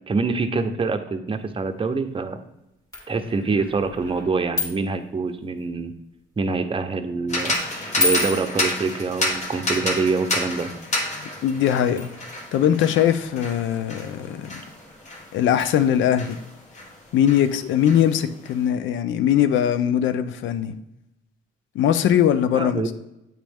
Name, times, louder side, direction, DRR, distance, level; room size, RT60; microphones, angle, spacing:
voice 1, 0.1-2.4 3.1-5.9 6.4-7.6 8.0-10.7 22.5-22.9, right 4 dB, 25° right, 0.7 m, -25 dB
sound 1, 1.4-1.5 1.7-1.8 2.9-5.0 5.3-5.7 6.3-6.6 7.5-9.5 10.5-10.6 12.0-17.5 17.7-17.8 18.2-18.3, left 3 dB, 15° left, 1.8 m, -32 dB
sound 2, 7.3-17.0 17.3-18.5, left 1 dB, 35° left, 1.2 m, -30 dB
voice 2, 11.4-12.1 12.5-14.6 15.3-16.4 17.1-20.7 21.7-22.9, left 10 dB, 75° left, 0.5 m, -21 dB
8.8 x 3.1 x 3.5 m
cardioid pair, 90°, 20 cm